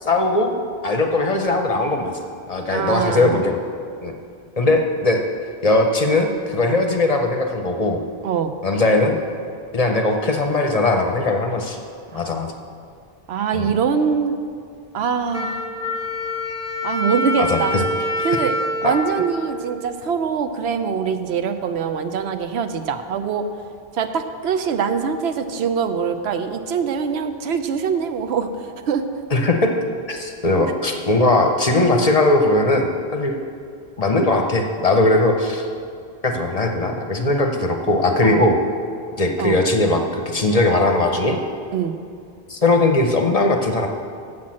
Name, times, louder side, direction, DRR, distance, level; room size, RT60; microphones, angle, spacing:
voice 1, 0.0-0.5 0.8-2.2 2.5-3.6 4.0-4.1 4.6-5.2 5.6-8.0 8.6-9.2 9.7-11.8 12.1-12.5 13.5-13.7 17.4-17.8 18.2-18.3 18.8-18.9 29.3-29.7 30.1-33.4 34.0-35.7 36.2-38.6 39.2-41.4 42.5-43.9, left 2 dB, 40° left, 4 dB, 0.7 m, -19 dB
voice 2, 2.7-3.4 8.2-8.5 12.1-12.2 13.3-14.3 14.9-15.6 16.8-17.8 18.2-18.5 18.8-23.5 23.9-28.5 28.9-29.1 38.2-38.5 39.4-39.6 41.7-41.9, right 6 dB, 85° right, 8 dB, 0.9 m, -23 dB
Wind instrument woodwind instrument, 15.3-20.1, left 1 dB, 15° left, 1.0 m, -26 dB
7.6 x 5.9 x 7.4 m, 2.3 s
omnidirectional pair, 1.1 m